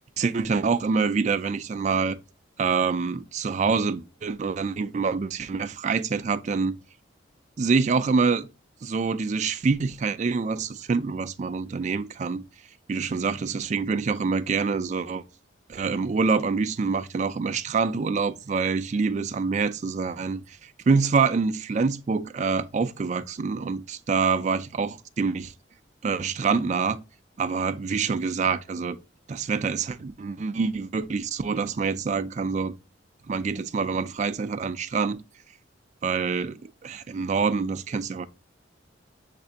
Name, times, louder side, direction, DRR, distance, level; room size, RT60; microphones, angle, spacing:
voice 1, 0.2-2.2 2.6-6.7 7.6-8.5 8.8-12.4 12.9-15.2 15.7-25.5 26.0-27.0 27.4-29.0 29.3-32.8 33.3-35.2 36.0-38.3, right 5 dB, 35° right, 0.3 m, -26 dB
5.9 x 3.3 x 2.7 m
head